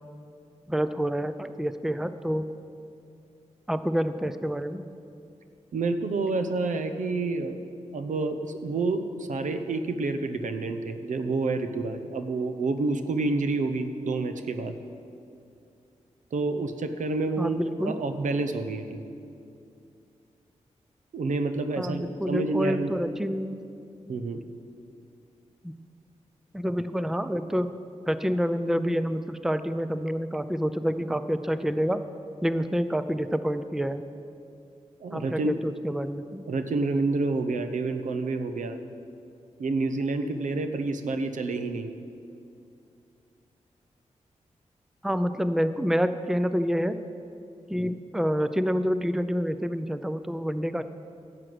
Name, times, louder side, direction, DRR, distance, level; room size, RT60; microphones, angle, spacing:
voice 1, 0.7-2.5 3.7-4.8 17.4-18.0 21.8-23.6 25.6-25.7 26.5-27.8 28.1-32.0 32.4-34.0 35.1-36.4 45.0-47.0 47.7-50.8, equal, 5° right, 11 dB, 0.5 m, -28 dB
voice 2, 5.7-7.6 7.9-14.8 16.3-19.1 21.1-23.0 24.1-24.4 35.0-35.6 36.5-38.8 39.6-41.9, right 3 dB, 85° right, 8 dB, 0.8 m, -28 dB
11.0 x 7.8 x 7.8 m, 2.5 s
cardioid pair, 65°, 13 cm